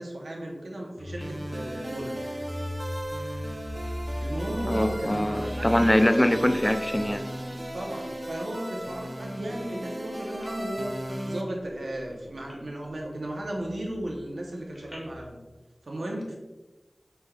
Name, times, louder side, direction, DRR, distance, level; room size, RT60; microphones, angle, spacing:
voice 1, 0.0-2.2 4.2-5.8 7.7-15.4 15.8-16.3, right 1 dB, 85° right, -1 dB, 0.8 m, -35 dB
sound 1, 1.0-8.4 8.8-9.9 10.3-10.5 10.8-11.7 12.0-12.5 12.9-15.3, equal, 35° left, 0.9 m, -39 dB
sound 2, 1.2-11.4, right 1 dB, 25° right, 0.6 m, -36 dB
voice 2, 4.7-7.2 7.5-7.6, left 1 dB, 15° left, 8 dB, 0.3 m, -23 dB
6.0 x 3.3 x 2.3 m, 1.1 s
wide cardioid pair, 60°, 0 cm